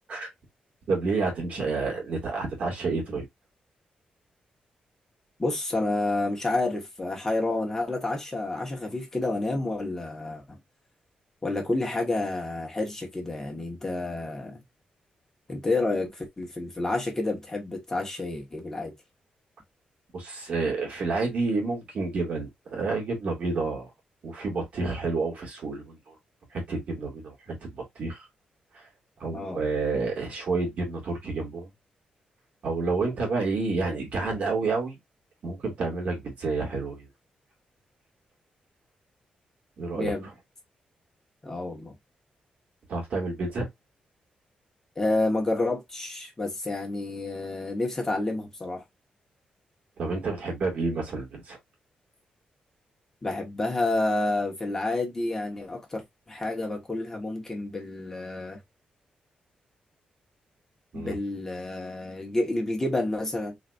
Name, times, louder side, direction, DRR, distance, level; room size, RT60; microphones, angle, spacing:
voice 1, 0.9-3.3 20.1-23.9 24.2-26.1 26.5-28.3 28.7-28.9 29.2-31.7 32.6-35.0 35.4-37.1 39.8-40.1 42.9-43.7 50.0-51.6 60.9-61.1, right 3 dB, 65° right, 2.2 m, -29 dB
voice 2, 5.4-10.6 11.4-14.6 15.5-18.9 29.3-29.6 39.9-40.3 41.4-41.9 44.9-48.8 53.2-58.6 60.9-63.5, left 2 dB, 20° left, 1.4 m, -29 dB
4.1 x 3.0 x 2.6 m
wide cardioid pair, 135°, 3 cm